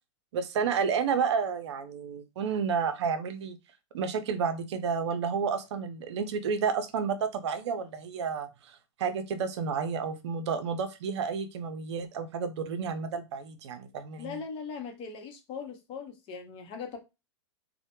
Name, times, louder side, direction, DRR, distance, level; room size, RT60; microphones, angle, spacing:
voice 1, 0.3-3.6 3.9-14.4, right 6 dB, 70° right, 0.5 m, -31 dB
voice 2, 14.2-17.0, left 5 dB, 35° left, 0.7 m, -39 dB
2.1 x 2.0 x 2.9 m
hypercardioid pair, 115°, 15 cm